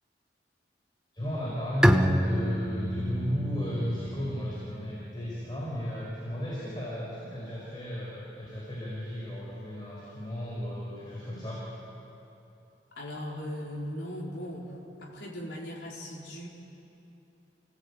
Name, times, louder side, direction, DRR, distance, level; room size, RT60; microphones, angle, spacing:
voice 1, 1.1-11.6, equal, 25° left, -6 dB, 5.3 m, -34 dB
Bowed string instrument, 1.8-5.3, equal, 5° right, 0.9 m, -28 dB
voice 2, 13.0-16.5, equal, 75° left, -3 dB, 4.5 m, -38 dB
29.0 x 17.5 x 8.8 m, 2.9 s
head